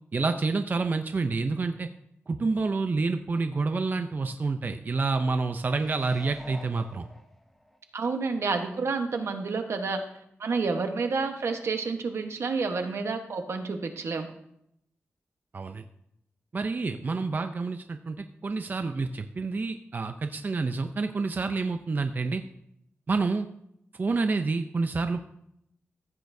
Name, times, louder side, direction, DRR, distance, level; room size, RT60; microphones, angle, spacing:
voice 1, 0.1-1.9 2.3-7.1 15.5-15.8 16.5-22.4 23.1-23.5 24.0-25.2, right 3 dB, 40° right, 7 dB, 0.5 m, -28 dB
sound 1, 5.7-7.8 8.3-8.4, equal, 5° left, 0.8 m, -47 dB
voice 2, 7.9-10.0 10.4-14.3, right 4 dB, 80° right, 5 dB, 1.1 m, -29 dB
15.0 x 8.4 x 2.7 m, 0.76 s
wide cardioid pair, 115°, 5 cm